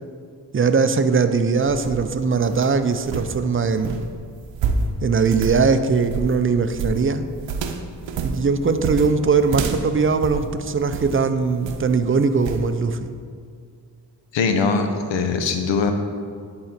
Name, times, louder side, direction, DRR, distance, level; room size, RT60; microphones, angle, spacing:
voice 1, 0.5-4.0 5.0-7.3 8.2-13.1, right 5 dB, 30° right, 10 dB, 0.4 m, -20 dB
sound 1, 1.5-11.2 11.6-12.0 12.4-12.7, right 4 dB, 85° right, 0.7 m, -29 dB
voice 2, 14.3-15.9, left 4 dB, 80° left, 6 dB, 0.8 m, -21 dB
10.5 x 4.0 x 4.4 m, 2.2 s
cardioid pair, 65°, 43 cm